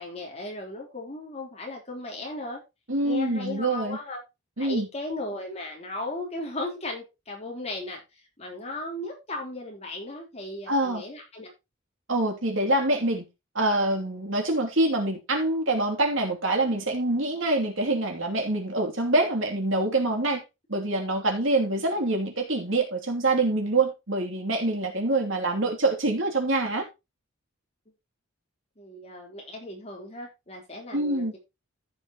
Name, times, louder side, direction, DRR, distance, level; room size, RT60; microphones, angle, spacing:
voice 1, 0.0-2.6 3.0-4.2 4.6-8.0 8.4-11.5 28.8-31.4, left 2 dB, 30° left, 3.6 m, -36 dB
voice 2, 2.9-4.0 4.6-4.9 10.7-11.0 12.1-13.2 13.5-20.4 20.7-26.8 30.9-31.3, right 2 dB, 60° right, 2.8 m, -25 dB
14.5 x 6.5 x 3.0 m
head